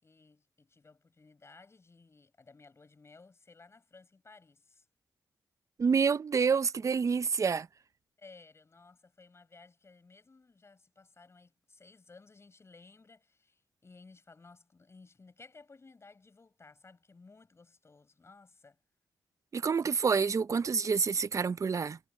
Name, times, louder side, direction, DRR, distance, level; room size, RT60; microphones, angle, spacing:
voice 1, 0.0-4.8 8.2-18.8, left 3 dB, 35° left, 6.3 m, -57 dB
voice 2, 5.8-7.7 19.5-22.0, right 5 dB, 45° right, 0.6 m, -28 dB
cardioid pair, 65°, 7 cm